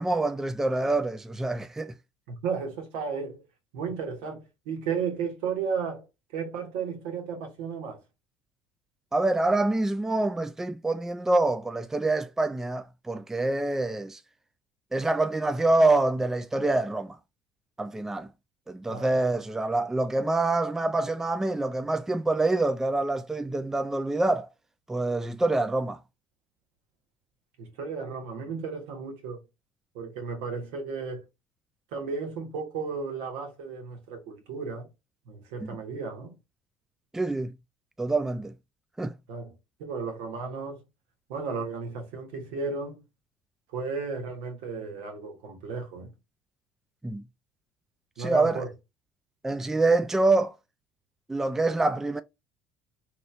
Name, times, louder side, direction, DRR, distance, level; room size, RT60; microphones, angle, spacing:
voice 1, 0.0-2.0 9.1-14.2 14.9-17.2 17.8-18.3 18.7-24.5 24.9-26.0 35.6-35.8 37.1-37.5 38.0-38.5 39.0-39.1 47.0-47.2 48.2-48.6 49.4-50.5 51.3-52.2, right 2 dB, 10° right, 0.3 m, -26 dB
voice 2, 2.3-3.4 3.7-6.0 6.3-8.0 18.9-19.1 27.6-29.4 29.9-31.2 31.9-34.9 35.3-36.3 39.3-39.5 39.8-40.8 41.3-43.0 43.7-46.1 48.2-48.7, right 5 dB, 75° right, 1.2 m, -34 dB
3.0 x 2.9 x 2.3 m
hypercardioid pair, 70°, 5 cm